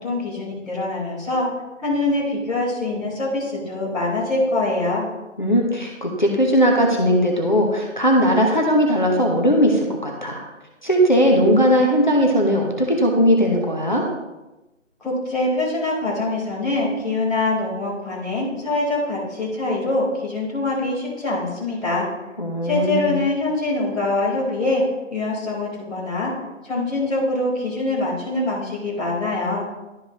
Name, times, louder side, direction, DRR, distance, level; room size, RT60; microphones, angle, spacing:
voice 1, 0.0-1.5 1.8-5.0 15.0-22.1 22.6-24.8 25.1-26.3 26.6-29.6, left 2 dB, ahead, -20 dB, 1.1 m, -24 dB
voice 2, 5.4-10.4 10.8-14.1 22.4-23.2, equal, 35° left, 0 dB, 0.9 m, -18 dB
12.0 x 5.0 x 3.0 m, 1.0 s
figure-of-eight pair, 180°, 39 cm